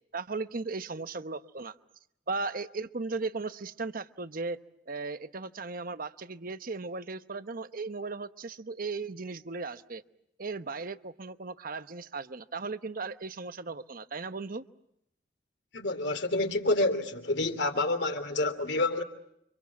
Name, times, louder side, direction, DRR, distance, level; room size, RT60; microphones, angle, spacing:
voice 1, 0.1-1.7 2.3-4.6 4.9-10.0 10.4-14.6, right 3 dB, 50° right, 1.0 m, -36 dB
voice 2, 15.7-19.0, left 2 dB, 65° left, 3.0 m, -28 dB
30.0 x 26.0 x 7.3 m
head